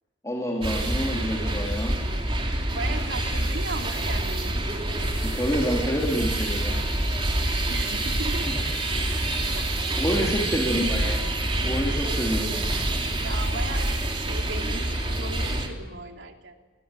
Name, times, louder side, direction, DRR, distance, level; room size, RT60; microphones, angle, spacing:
voice 1, 0.2-2.0 5.2-6.8 8.4-8.6 10.0-11.3 11.6-12.5, equal, 15° left, -2 dB, 3.0 m, -28 dB
sound 1, 0.6-15.7, right 1 dB, 25° right, 3.6 m, -27 dB
voice 2, 2.7-4.6 7.7-8.6 9.5-9.8 10.1-10.6 13.2-16.6, right 2 dB, 70° right, 3 dB, 3.1 m, -37 dB
26.0 x 20.5 x 9.1 m, 1.3 s
head